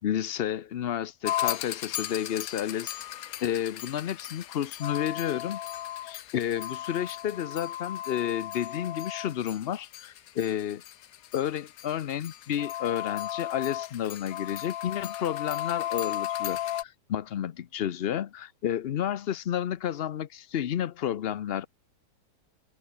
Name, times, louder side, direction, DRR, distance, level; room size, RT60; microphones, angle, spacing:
voice 1, 0.0-2.9 3.4-5.6 6.0-10.8 11.3-21.7, left 10 dB, 85° left, 0.5 m, -31 dB
sound 1, 1.2-16.8, left 12 dB, 60° left, 1.1 m, -35 dB
omnidirectional pair, 1.9 m